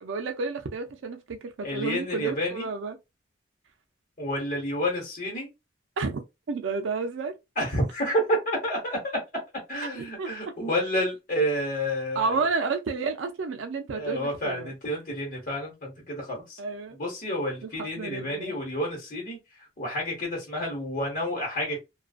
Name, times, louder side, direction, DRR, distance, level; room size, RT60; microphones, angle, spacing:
voice 1, 0.0-3.0 6.0-6.2 6.5-7.3 10.0-10.5 12.1-14.7 16.6-17.0 17.6-18.5, right 4 dB, 90° right, 0.4 m, -31 dB
voice 2, 1.6-2.7 4.2-5.5 7.6-9.1 9.7-12.4 13.9-16.6 17.0-21.8, equal, 45° left, 1.0 m, -30 dB
2.4 x 2.2 x 2.4 m
head